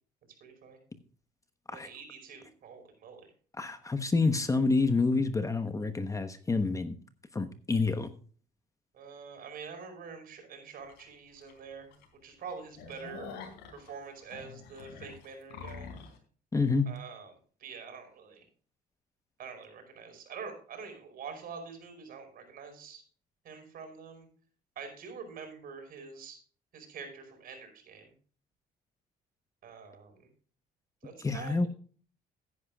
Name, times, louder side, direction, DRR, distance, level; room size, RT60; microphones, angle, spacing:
voice 1, 0.4-0.8 1.7-3.2 8.9-12.0 12.2-13.3 13.7-15.9 16.9-17.3 17.6-18.4 19.4-23.0 23.4-24.3 24.7-26.4 26.7-28.1 29.6-30.3 31.0-31.7, right 5 dB, 60° right, 4 dB, 5.1 m, -45 dB
voice 2, 3.6-7.0 7.3-8.1 16.5-16.9 31.2-31.7, left 3 dB, 20° left, 9 dB, 1.0 m, -28 dB
sound 1, 10.9-11.0 11.5-11.6 11.9-12.0 12.4-16.2, left 5 dB, 90° left, 3.7 m, -46 dB
16.0 x 10.0 x 2.4 m, 0.43 s
cardioid pair, 110°, 17 cm